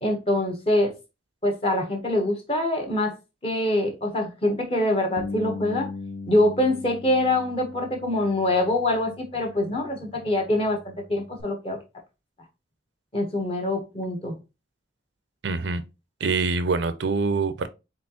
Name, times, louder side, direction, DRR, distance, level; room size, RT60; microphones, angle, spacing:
voice 1, 0.0-0.9 1.4-3.1 3.4-5.9 6.3-11.8 13.1-14.4, left 1 dB, 30° left, 1.0 m, -24 dB
Bass guitar, 5.2-11.4, left 3 dB, 75° left, 1.0 m, -39 dB
voice 2, 15.4-15.8 16.2-17.7, right 4 dB, 65° right, 0.5 m, -25 dB
4.2 x 3.9 x 2.9 m
head